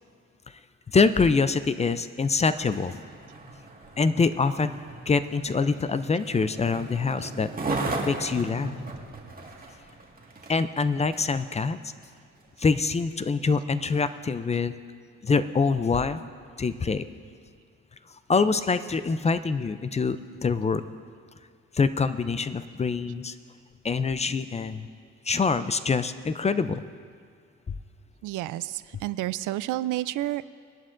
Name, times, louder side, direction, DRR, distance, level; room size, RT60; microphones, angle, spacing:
voice 1, 0.9-3.0 4.0-4.8 5.1-7.5 8.0-8.8 10.5-11.9 12.6-14.7 15.2-16.2 16.6-17.0 18.3-20.8 21.7-23.3 23.8-24.9 25.3-26.8 27.7-27.8, left 4 dB, 20° left, 12 dB, 0.4 m, -25 dB
Skateboard, 2.6-11.4 12.0-12.1, right 2 dB, 30° right, 1.8 m, -36 dB
voice 2, 28.2-30.5, right 15 dB, 80° right, 15 dB, 0.4 m, -30 dB
21.0 x 11.0 x 2.6 m, 2.1 s
cardioid pair, 90°, 30 cm